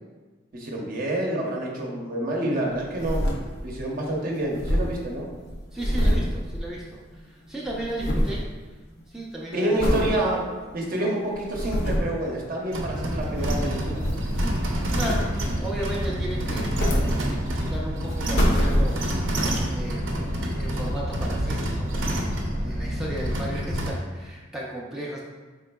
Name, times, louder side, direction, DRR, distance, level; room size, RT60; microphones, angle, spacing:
voice 1, 0.5-3.3 3.6-5.3 9.5-10.5 10.7-14.0, right 1 dB, 50° right, -2 dB, 0.7 m, -28 dB
sound 1, 2.7-3.9 4.1-4.2 4.4-7.2 7.4-8.5 8.9-9.2 9.8-10.2 10.7-10.8 11.3-12.2 13.2-14.6 15.0-15.6 16.4-17.7 18.1-19.3 19.9-20.0, equal, 60° left, 0.6 m, -26 dB
voice 2, 5.7-8.4 9.1-9.8 14.6-15.3 15.6-19.0 19.7-20.2 20.6-25.2, right 1 dB, 5° right, -5 dB, 0.4 m, -35 dB
sound 2, 12.7-23.9, equal, 85° right, 0.6 m, -27 dB
4.2 x 3.6 x 2.2 m, 1.3 s
head